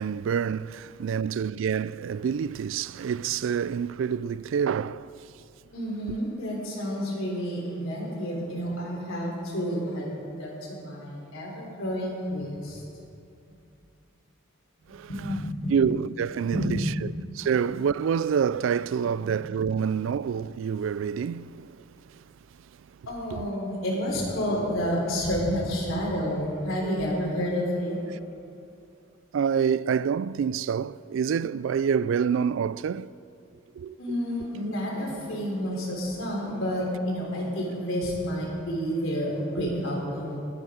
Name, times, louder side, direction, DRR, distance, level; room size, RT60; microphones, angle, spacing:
voice 1, 0.0-5.1 14.9-15.3 15.7-16.9 17.3-22.2 23.3-23.5 29.3-33.1 33.7-34.2, right 7 dB, 65° right, 0.3 m, -27 dB
voice 2, 5.7-12.8 15.1-15.7 16.5-16.9 23.1-28.0 34.0-40.4, equal, 70° left, 3.7 m, -30 dB
20.5 x 9.0 x 5.0 m
head